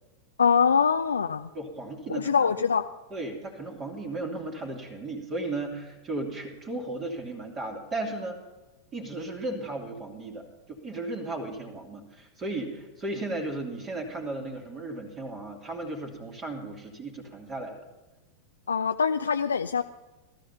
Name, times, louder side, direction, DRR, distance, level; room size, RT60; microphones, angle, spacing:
voice 1, 0.4-1.5 2.1-2.9 18.7-19.8, left 6 dB, 70° left, 8 dB, 0.5 m, -23 dB
voice 2, 1.5-2.3 3.1-8.4 8.9-10.4 10.7-17.8, right 2 dB, 25° right, 2 dB, 2.9 m, -35 dB
17.5 x 13.5 x 5.7 m, 1.1 s
figure-of-eight pair, 90°, 0 cm